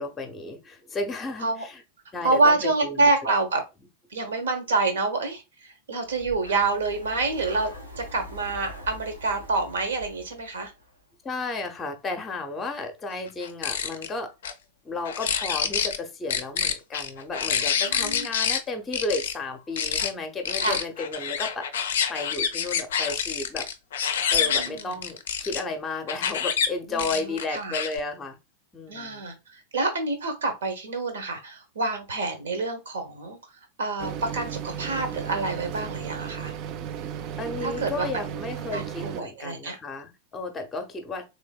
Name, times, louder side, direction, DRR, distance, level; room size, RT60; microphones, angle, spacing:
voice 1, 0.0-1.8 2.1-3.1 11.2-14.3 14.8-21.7 22.1-23.7 24.3-28.4 28.7-29.3 37.4-41.2, left 3 dB, 15° left, 0.7 m, -33 dB
voice 2, 2.2-3.6 4.1-7.7 8.0-10.7 17.8-18.3 20.6-20.8 24.4-25.0 26.9-27.7 28.9-33.4 33.8-36.5 37.6-38.1 38.7-39.8, right 3 dB, 65° right, 0.9 m, -27 dB
Breathing, 6.1-11.0, equal, 90° right, 0.9 m, -43 dB
sound 1, 13.4-14.1 14.4-14.5 15.0-16.0 16.3-18.6 18.9-19.3 19.8-20.1 20.4-25.6 26.1-26.7 27.0-28.0, left 7 dB, 60° left, 0.4 m, -27 dB
sound 2, 34.0-39.2, right 9 dB, 40° right, 0.3 m, -35 dB
3.3 x 3.3 x 2.3 m
figure-of-eight pair, 90°, 0 cm